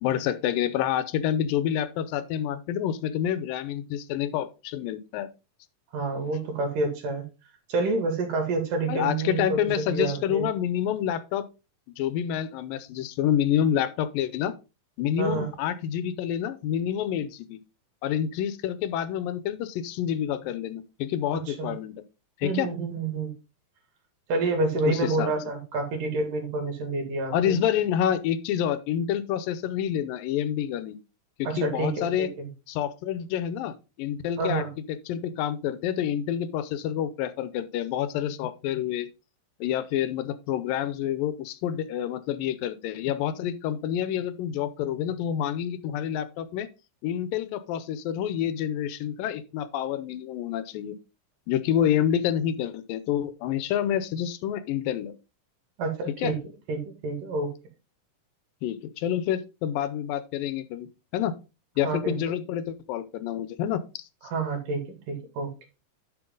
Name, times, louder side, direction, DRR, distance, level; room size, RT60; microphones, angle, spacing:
voice 1, 0.0-5.3 8.9-11.5 12.0-14.5 15.0-17.6 18.0-21.9 22.4-22.7 24.9-25.3 27.3-31.0 31.4-32.3 32.7-39.1 39.6-46.7 47.0-51.0 51.5-55.1 56.2-56.3 58.6-61.3 61.8-64.0, left 10 dB, 85° left, 2.5 m, -28 dB
voice 2, 5.9-7.3 7.7-10.5 15.2-15.5 21.5-21.7 22.4-23.3 24.3-27.6 31.5-32.5 34.4-34.7 55.8-56.4 56.7-57.5 61.8-62.4 64.2-65.5, right 3 dB, 75° right, 3.8 m, -28 dB
9.7 x 6.6 x 3.8 m
omnidirectional pair, 3.9 m